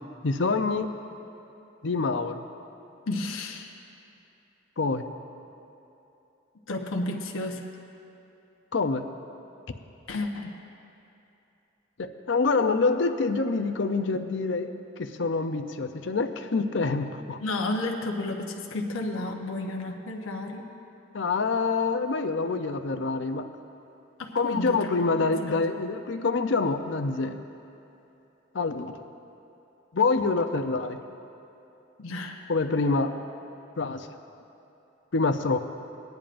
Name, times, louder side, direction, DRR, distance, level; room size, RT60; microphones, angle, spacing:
voice 1, 0.2-0.9 1.8-2.4 4.8-5.1 8.7-9.0 12.0-14.7 15.0-17.4 21.1-23.5 24.3-27.4 28.5-29.0 29.9-31.0 32.5-33.2 33.8-34.1 35.1-35.6, left 4 dB, 65° left, 7 dB, 0.6 m, -26 dB
voice 2, 3.1-3.7 6.7-7.6 10.1-10.6 17.4-20.7 24.2-24.9 25.2-25.6 32.0-32.4, left 2 dB, 90° left, 1 dB, 1.0 m, -32 dB
20.0 x 10.5 x 2.6 m, 2.9 s
head